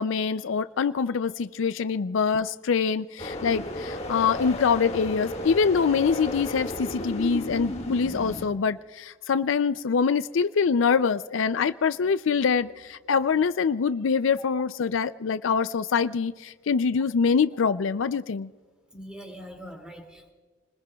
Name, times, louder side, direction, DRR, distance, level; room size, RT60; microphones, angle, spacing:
voice 1, 0.0-18.5, left 5 dB, 70° left, 13 dB, 0.4 m, -24 dB
sound 1, 3.2-8.5, left 1 dB, 30° left, 1.8 m, -34 dB
voice 2, 18.9-20.3, equal, 5° right, 2 dB, 2.4 m, -42 dB
30.0 x 20.5 x 2.3 m, 1.5 s
head